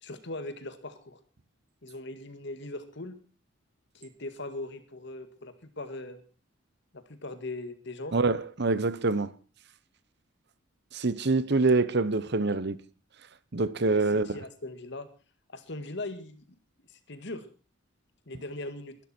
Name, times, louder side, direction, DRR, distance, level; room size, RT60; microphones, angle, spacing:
voice 1, 0.0-1.2 1.8-3.2 3.9-6.2 6.9-8.2 13.8-15.1 15.5-16.5 16.9-17.5 18.3-19.0, left 2 dB, 60° left, 2.1 m, -40 dB
voice 2, 8.1-9.3 10.9-12.8 13.5-14.4, right 3 dB, 55° right, 1.0 m, -25 dB
22.0 x 12.0 x 4.5 m
head